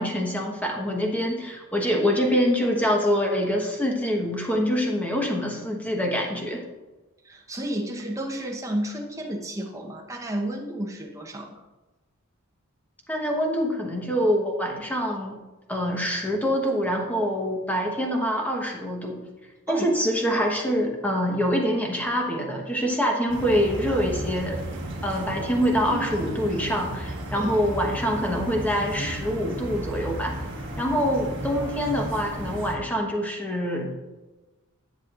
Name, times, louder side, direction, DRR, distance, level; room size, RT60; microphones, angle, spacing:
voice 1, 0.0-6.6 13.1-15.4 15.7-19.2 19.7-24.6 25.0-30.4 30.8-34.0, equal, 5° left, 0 dB, 1.1 m, -25 dB
voice 2, 7.2-11.6 19.7-19.9 27.3-27.5, right 1 dB, 15° right, 1 dB, 0.9 m, -31 dB
sound 1, 23.3-32.8, right 1 dB, 55° right, 1.6 m, -34 dB
10.5 x 7.2 x 2.5 m, 1.2 s
head